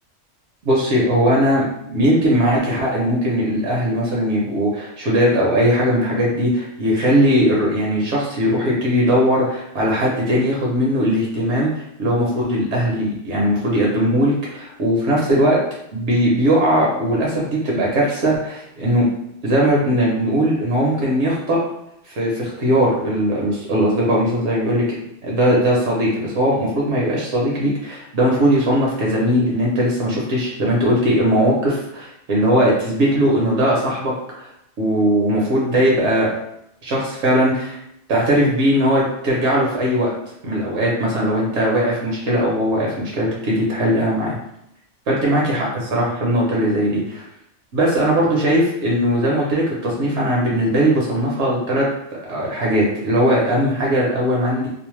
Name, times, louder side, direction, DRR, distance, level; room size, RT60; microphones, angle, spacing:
voice 1, 0.6-15.6 15.9-19.1 19.4-21.6 22.0-24.8 25.2-34.1 34.8-36.3 36.8-37.8 38.1-40.1 40.4-44.3 45.1-47.2 47.7-51.9 52.3-54.7, equal, 70° right, -4 dB, 0.9 m, -19 dB
2.6 x 2.0 x 3.0 m, 0.78 s
omnidirectional pair, 1.2 m